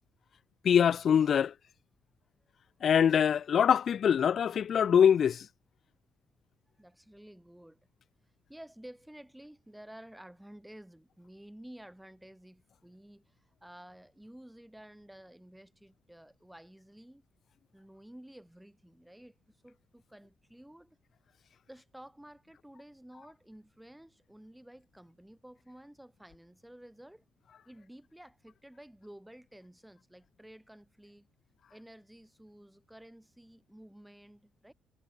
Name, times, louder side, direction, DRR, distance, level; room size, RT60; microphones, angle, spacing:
voice 1, 0.6-1.5 2.8-5.5, left 8 dB, 55° left, 0.4 m, -24 dB
voice 2, 6.8-7.8 8.5-17.2 17.7-21.0 21.7-27.2 27.7-31.3 31.7-34.7, right 1 dB, 5° right, 5.2 m, -52 dB
cardioid pair, 90°, 0 cm